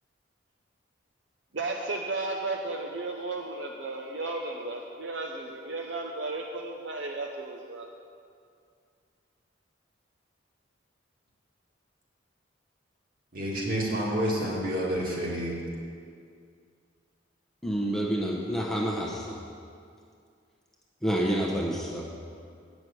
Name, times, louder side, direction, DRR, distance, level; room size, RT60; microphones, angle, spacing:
voice 1, 1.5-7.9, right 2 dB, 60° right, 1 dB, 0.7 m, -34 dB
voice 2, 13.3-15.5, equal, 45° right, -4 dB, 2.0 m, -29 dB
voice 3, 17.6-19.4 21.0-22.1, right 1 dB, ahead, -3 dB, 0.8 m, -28 dB
8.5 x 6.2 x 8.1 m, 2.3 s
head